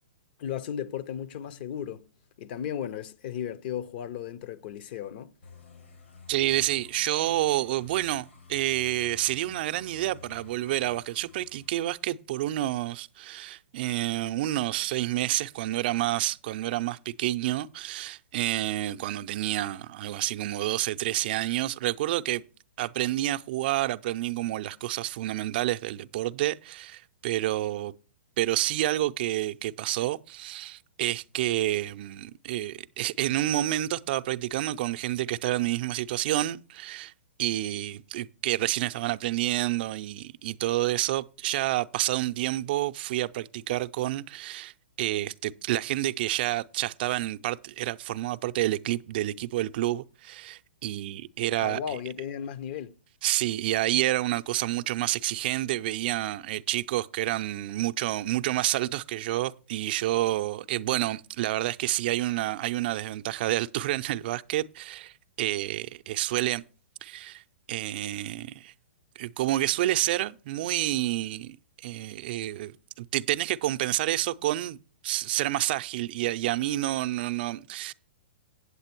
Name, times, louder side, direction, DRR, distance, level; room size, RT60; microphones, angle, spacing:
voice 1, 0.4-2.1 2.4-5.3 51.6-52.9, left 9 dB, 50° left, 0.7 m, -35 dB
sound 1, 5.4-11.9, left 5 dB, 80° left, 1.9 m, -52 dB
voice 2, 6.3-22.4 22.8-27.9 28.4-37.1 37.4-44.7 45.0-51.8 53.2-66.6 67.0-67.4 67.7-68.7 69.2-71.6 71.8-74.8 75.0-77.9, right 15 dB, 50° right, 0.5 m, -29 dB
8.3 x 8.0 x 4.4 m
hypercardioid pair, 120°, 7 cm